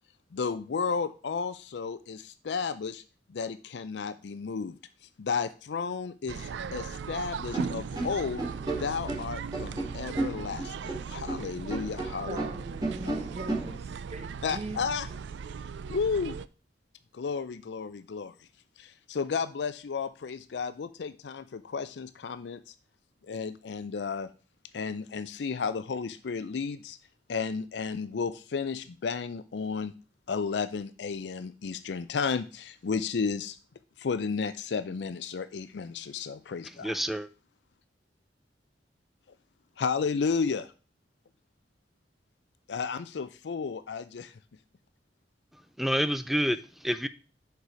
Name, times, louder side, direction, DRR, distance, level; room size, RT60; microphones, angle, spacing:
voice 1, 0.3-3.0 3.3-4.8 5.2-8.4 8.8-12.4 14.4-15.1 15.9-16.4 17.1-18.3 18.8-22.7 23.3-24.3 24.7-27.0 27.3-29.9 30.3-33.6 34.0-36.9 39.8-40.7 42.7-44.3, left 5 dB, 70° left, 0.4 m, -33 dB
sound 1, 6.3-16.5, right 6 dB, 80° right, 0.4 m, -38 dB
sound 2, 7.5-11.4 11.7-13.7, right 2 dB, 25° right, 2.1 m, -33 dB
voice 2, 12.3-14.8 15.1-15.2, right 2 dB, 40° right, 0.8 m, -41 dB
voice 3, 36.8-37.3 45.5-47.1, equal, ahead, 0.4 m, -29 dB
6.7 x 4.7 x 4.8 m
head